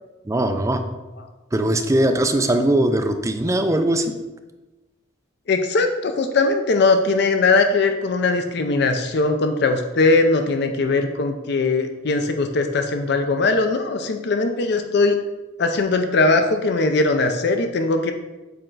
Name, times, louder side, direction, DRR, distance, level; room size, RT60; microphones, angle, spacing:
voice 1, 0.3-0.8 1.5-4.1, right 1 dB, 15° right, 7 dB, 0.4 m, -20 dB
voice 2, 5.5-15.2 15.6-18.1, left 3 dB, 60° left, 6 dB, 0.5 m, -20 dB
6.8 x 4.3 x 3.8 m, 1.1 s
head